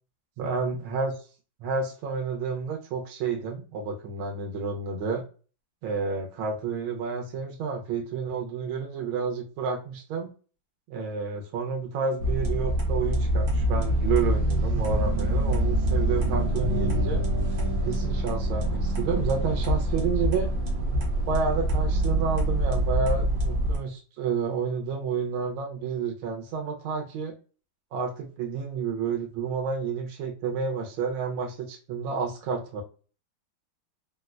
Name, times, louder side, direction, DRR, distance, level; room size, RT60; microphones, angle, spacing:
voice 1, 0.4-1.1 1.6-5.2 5.8-10.3 10.9-17.2 17.9-20.5 21.3-27.3 27.9-32.8, right 5 dB, 80° right, 2 dB, 1.5 m, -30 dB
sound 1, 12.2-23.8, right 1 dB, 60° right, 1.1 m, -25 dB
3.8 x 2.1 x 2.3 m, 0.37 s
omnidirectional pair, 2.2 m